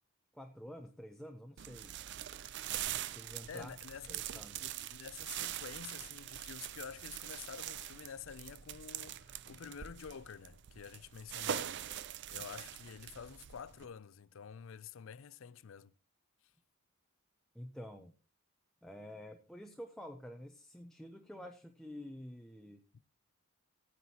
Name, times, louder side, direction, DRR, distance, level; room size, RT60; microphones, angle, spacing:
voice 1, 0.3-2.0 3.1-3.7 4.1-4.7 12.3-12.4 17.5-18.1 18.8-22.8, equal, ahead, 0.6 m, -49 dB
sound 1, 1.6-13.9, right 11 dB, 50° right, 0.4 m, -43 dB
voice 2, 3.5-15.9, left 7 dB, 60° left, 0.4 m, -49 dB
15.5 x 9.4 x 2.9 m
head